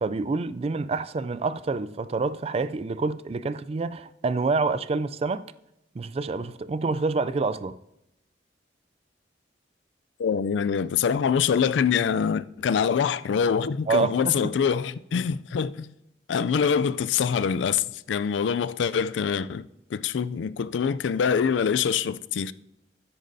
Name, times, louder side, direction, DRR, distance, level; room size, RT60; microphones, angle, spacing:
voice 1, 0.0-5.4 5.9-7.8 13.9-14.5, right 4 dB, 35° right, 0.3 m, -27 dB
voice 2, 10.2-15.9 16.3-22.5, left 7 dB, 90° left, 0.4 m, -25 dB
13.0 x 10.0 x 2.7 m
head